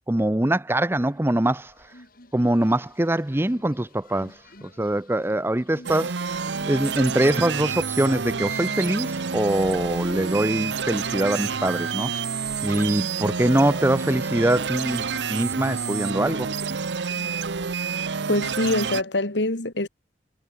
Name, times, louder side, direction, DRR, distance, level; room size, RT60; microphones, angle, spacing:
voice 1, 0.1-1.7 2.3-6.1 6.7-12.1 12.6-16.5, right 1 dB, 15° right, 0.7 m, -23 dB
sound 1, 1.1-17.6, left 1 dB, 50° left, 5.1 m, -50 dB
sound 2, 5.8-19.0, right 5 dB, 70° right, 0.8 m, -28 dB
voice 2, 18.3-19.9, left 2 dB, 70° left, 2.2 m, -24 dB
head